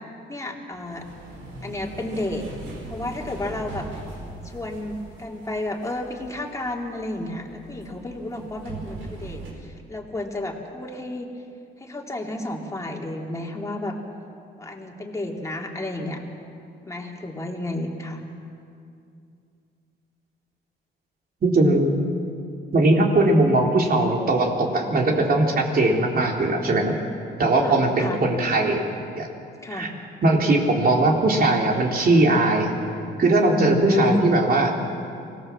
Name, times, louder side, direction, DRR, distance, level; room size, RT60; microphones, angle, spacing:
voice 1, 0.3-1.0 1.6-2.4 2.9-3.8 4.4-4.9 5.2-11.3 11.8-13.9 14.6-16.2 16.8-18.2 27.6-28.2 29.6-29.9 33.3-34.2, left 1 dB, 15° left, 0 dB, 3.1 m, -31 dB
sound 1, 0.7-9.5, right 2 dB, 80° right, 5.1 m, -40 dB
voice 2, 21.4-21.9 22.7-26.9 27.4-28.8 29.2-29.3 29.7-29.9 30.2-32.7 33.2-34.7, right 2 dB, 50° right, 1 dB, 3.6 m, -20 dB
24.5 x 18.0 x 7.5 m, 2.5 s
cardioid pair, 90°, 20 cm